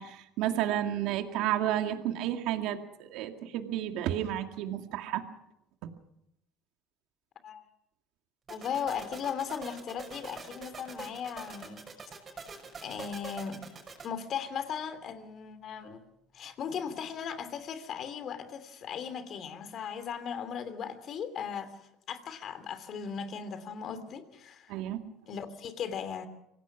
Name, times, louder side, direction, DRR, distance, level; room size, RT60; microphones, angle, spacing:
voice 1, 0.0-5.2 24.7-25.0, right 12 dB, 70° right, 6 dB, 2.1 m, -31 dB
voice 2, 8.5-11.8 12.4-12.5 12.8-13.6 14.0-16.0 16.3-24.7 25.3-26.3, left 7 dB, 50° left, 11 dB, 3.0 m, -37 dB
sound 1, 8.5-14.1, right 4 dB, 30° right, 6.0 m, -44 dB
25.5 x 18.0 x 6.1 m, 0.82 s
supercardioid pair, 100°, 0 cm